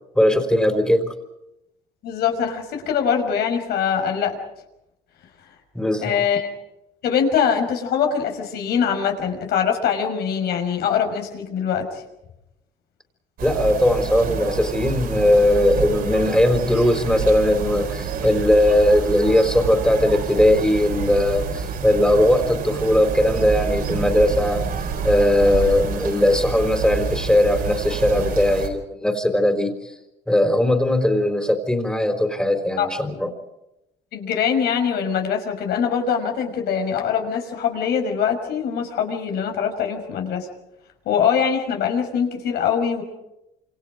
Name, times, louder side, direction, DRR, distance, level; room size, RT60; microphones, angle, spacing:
voice 1, 0.1-1.0 5.7-6.2 13.4-24.7 25.0-29.9 30.3-33.3, left 1 dB, 5° left, 5 dB, 4.3 m, -19 dB
voice 2, 2.0-4.4 6.0-6.5 7.0-12.0 32.8-32.9 34.1-40.5 41.1-43.0, left 7 dB, 70° left, 4 dB, 5.9 m, -23 dB
sound 1, 13.4-28.7, right 6 dB, 65° right, 4.8 m, -28 dB
28.0 x 27.5 x 5.1 m, 0.88 s
cardioid pair, 110°, 17 cm